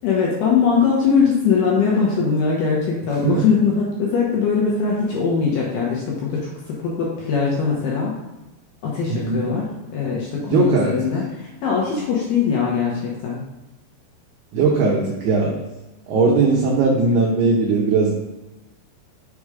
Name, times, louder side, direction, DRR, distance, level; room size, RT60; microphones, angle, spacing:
voice 1, 0.0-8.2 8.8-13.4, left 5 dB, 70° left, -4 dB, 2.5 m, -21 dB
voice 2, 9.1-9.5 10.4-10.9 14.5-15.6 16.1-18.1, right 4 dB, 85° right, -3 dB, 2.3 m, -19 dB
7.1 x 4.9 x 4.9 m, 1.0 s
omnidirectional pair, 5.9 m